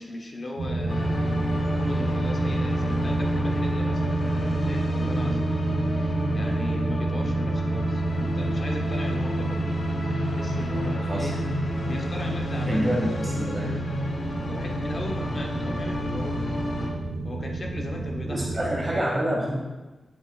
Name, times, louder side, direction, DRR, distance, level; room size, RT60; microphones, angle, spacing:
voice 1, 0.0-1.4 1.7-5.5 5.9-9.6 10.3-11.6 11.8-12.9 14.5-16.6 17.2-19.4, left 1 dB, 40° left, 1 dB, 1.0 m, -38 dB
sound 1, 0.6-19.0, right 2 dB, 85° right, 1.0 m, -28 dB
sound 2, 0.9-16.9, left 1 dB, 70° left, 1.3 m, -32 dB
voice 2, 12.7-13.7 18.3-19.5, equal, 25° right, -3 dB, 2.1 m, -27 dB
8.0 x 7.8 x 2.5 m, 1.2 s
wide cardioid pair, 125°, 0 cm